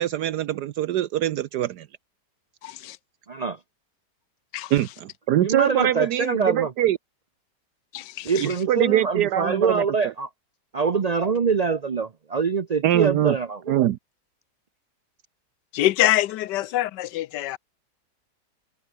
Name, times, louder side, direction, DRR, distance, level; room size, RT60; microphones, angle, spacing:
voice 1, 0.0-1.9 4.7-7.0 8.4-9.8 12.8-13.4 13.7-14.0, right 12 dB, 75° right, 1.3 m, -23 dB
voice 2, 2.6-3.0 4.5-4.7 7.9-8.5 15.7-17.6, left 14 dB, 85° left, 1.3 m, -25 dB
voice 3, 3.3-3.6 5.4-6.7 8.2-10.3 10.7-13.7, right 5 dB, 50° right, 0.4 m, -24 dB
omnidirectional pair, 1.8 m